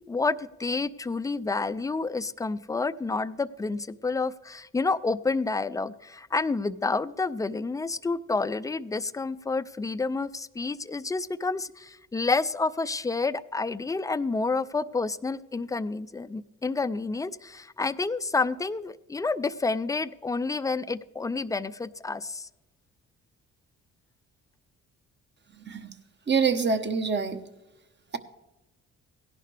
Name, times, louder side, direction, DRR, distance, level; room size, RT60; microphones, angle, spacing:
voice 1, 0.1-22.5, left 3 dB, 10° left, 15 dB, 0.4 m, -29 dB
voice 2, 25.6-25.9 26.3-27.4, right 5 dB, 35° right, 9 dB, 1.1 m, -26 dB
17.0 x 11.0 x 3.3 m, 1.0 s
cardioid pair, 90°, 30 cm